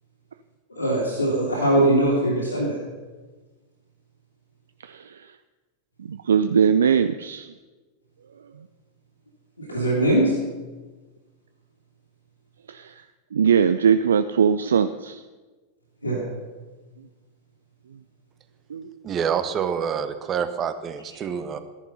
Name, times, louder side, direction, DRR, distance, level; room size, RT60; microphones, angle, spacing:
voice 1, 0.8-2.8 9.6-10.4 16.0-16.3, right 1 dB, 80° left, -5 dB, 2.7 m, -21 dB
voice 2, 4.8-5.4 6.0-7.5 8.4-8.7 9.7-9.9 12.7-13.0 13.3-15.2 16.0-16.2 17.0-17.1 17.9-18.0 18.7-19.1, right 7 dB, 65° right, 11 dB, 0.4 m, -22 dB
voice 3, 19.0-21.6, right 7 dB, 25° right, 11 dB, 1.0 m, -27 dB
14.0 x 10.5 x 5.5 m, 1.3 s
figure-of-eight pair, 90°, 0 cm